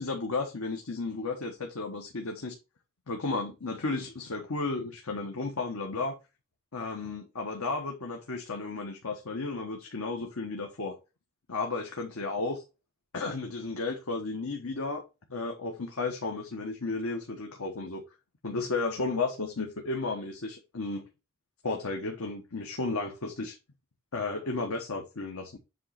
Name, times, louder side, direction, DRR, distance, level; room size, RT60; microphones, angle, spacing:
voice 1, 0.0-2.5 3.1-6.1 6.7-11.0 11.5-12.6 13.1-15.0 15.3-18.0 18.4-21.0 21.6-23.6 24.1-25.6, left 3 dB, 85° left, 1.2 m, -33 dB
7.6 x 3.1 x 5.7 m
head